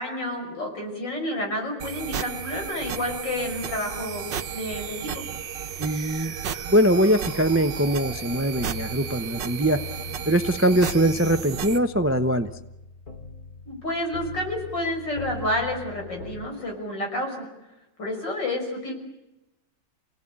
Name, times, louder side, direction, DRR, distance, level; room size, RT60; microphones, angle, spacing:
voice 1, 0.0-4.2 4.5-5.2 13.7-17.5 18.0-18.9, left 1 dB, 75° left, 2 dB, 6.6 m, -30 dB
sound 1, 1.8-11.8, right 8 dB, 75° right, 1.7 m, -33 dB
voice 2, 5.8-6.3 6.7-9.8 10.2-12.5, right 1 dB, 15° right, 9 dB, 0.5 m, -22 dB
sound 2, 7.5-16.5, left 3 dB, 55° left, 3.4 m, -41 dB
29.0 x 17.5 x 8.9 m, 0.97 s
omnidirectional pair, 1.9 m